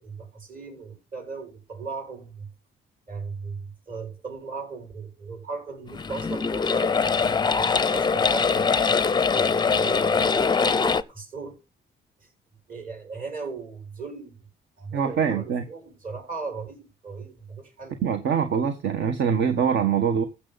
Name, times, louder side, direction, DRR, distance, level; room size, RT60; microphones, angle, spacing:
voice 1, 0.0-2.5 3.1-8.6 9.3-11.6 12.2-12.3 12.7-14.3 14.8-18.0, right 4 dB, 45° right, 7.1 m, -38 dB
sound 1, 5.9-11.0, left 5 dB, 20° left, 0.5 m, -22 dB
voice 2, 14.9-15.6 18.0-20.2, right 7 dB, 65° right, 1.4 m, -23 dB
15.0 x 7.0 x 4.1 m
cardioid pair, 90°, 20 cm